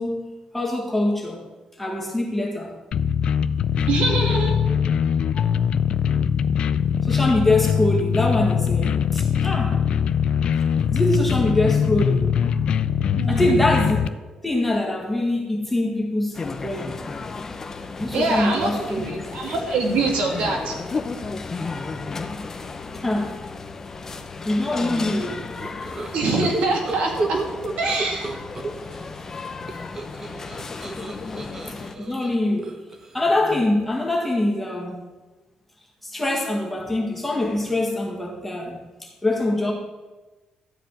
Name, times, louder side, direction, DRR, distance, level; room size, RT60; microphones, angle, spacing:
voice 1, 0.0-1.4 1.8-2.7 5.3-5.5 7.0-9.8 10.9-12.6 13.3-14.0 14.4-17.0 18.0-19.1 21.6-21.9 22.9-23.4 24.4-25.5 31.6-32.7 33.1-35.1 36.0-39.7, left 1 dB, 5° left, -1 dB, 1.8 m, -24 dB
sound 1, 2.9-14.1, left 7 dB, 50° left, 0.4 m, -22 dB
voice 2, 3.9-4.6 13.2-13.6 18.1-18.7 19.1-20.7 26.1-27.4 27.8-28.3, right 3 dB, 80° right, 0 dB, 2.8 m, -24 dB
sound 2, 16.3-31.9, left 4 dB, 20° left, 0.7 m, -34 dB
sound 3, 25.6-29.0 29.3-33.8, right 2 dB, 25° right, 0.9 m, -32 dB
13.0 x 4.9 x 9.0 m, 1.2 s
cardioid pair, 180°, 2 cm